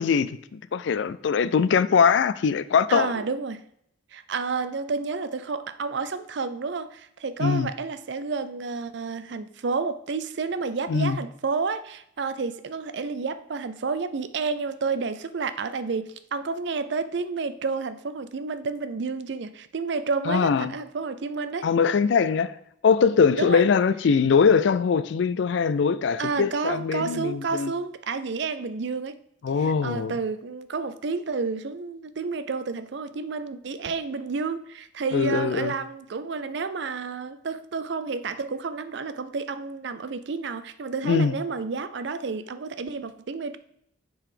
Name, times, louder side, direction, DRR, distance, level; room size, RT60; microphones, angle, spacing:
voice 1, 0.0-3.1 7.4-7.7 10.9-11.2 20.3-20.7 21.6-22.5 22.8-27.7 29.4-30.1 35.1-35.7 41.0-41.3, left 6 dB, 65° left, 0.3 m, -22 dB
voice 2, 2.9-3.6 4.1-21.7 23.3-23.6 26.2-29.2 29.6-43.6, right 4 dB, 60° right, 0.4 m, -30 dB
7.3 x 3.9 x 4.9 m
head